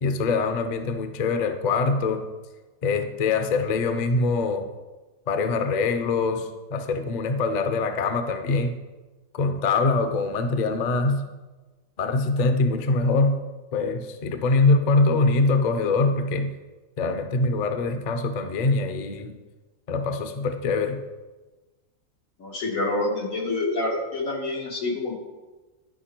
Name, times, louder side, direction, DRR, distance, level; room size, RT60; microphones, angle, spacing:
voice 1, 0.0-2.2 2.8-4.7 5.3-8.7 9.3-11.2 12.0-13.4 13.7-16.5 17.0-19.3 19.9-21.0, left 3 dB, 45° left, 8 dB, 0.6 m, -23 dB
voice 2, 22.4-25.2, left 2 dB, 90° left, -1 dB, 2.0 m, -27 dB
11.0 x 5.1 x 4.4 m, 1.2 s
omnidirectional pair, 1.4 m